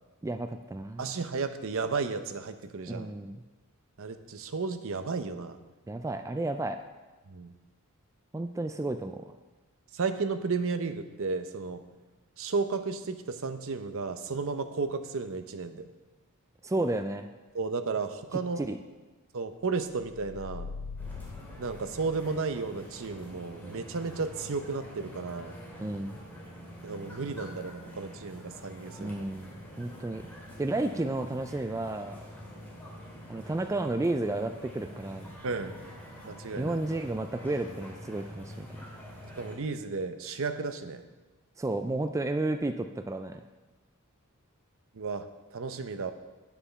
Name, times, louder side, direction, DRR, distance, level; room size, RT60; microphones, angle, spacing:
voice 1, 0.2-1.2 2.9-3.4 5.9-6.8 8.3-9.3 16.6-17.3 18.6-18.8 25.8-26.2 29.0-30.3 30.6-32.2 33.3-35.3 36.6-38.7 41.6-43.4, right 2 dB, 15° right, 7 dB, 0.3 m, -32 dB
voice 2, 1.0-3.1 4.0-5.6 7.3-7.5 9.9-11.8 12.4-15.8 17.5-18.6 19.3-20.7 21.6-25.5 26.8-29.2 35.4-35.8 36.2-36.8 39.4-41.0 44.9-45.3 45.5-46.1, right 4 dB, 65° right, 9 dB, 0.7 m, -33 dB
sound 1, 19.9-22.6, left 4 dB, 80° left, 0.5 m, -42 dB
sound 2, 21.0-39.6, equal, 10° left, 2.4 m, -46 dB
9.3 x 7.1 x 5.6 m, 1.2 s
head